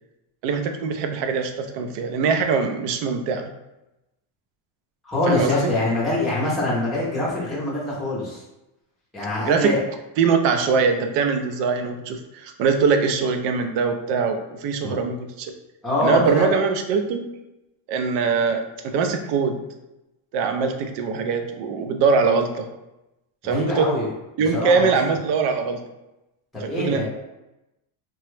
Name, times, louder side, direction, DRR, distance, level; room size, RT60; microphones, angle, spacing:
voice 1, 0.4-3.5 5.3-5.7 9.4-9.8 10.2-15.5 16.0-17.3 17.9-19.7 20.3-22.7 23.4-23.9 24.4-25.8 26.6-27.1, right 5 dB, 60° right, 6 dB, 0.5 m, -22 dB
voice 2, 5.0-8.4 9.1-9.8 14.8-14.9 15.8-16.5 23.4-24.1 24.5-24.9 26.5-27.1, left 2 dB, ahead, -7 dB, 0.6 m, -24 dB
2.9 x 2.2 x 3.1 m, 0.95 s
cardioid pair, 175°, 49 cm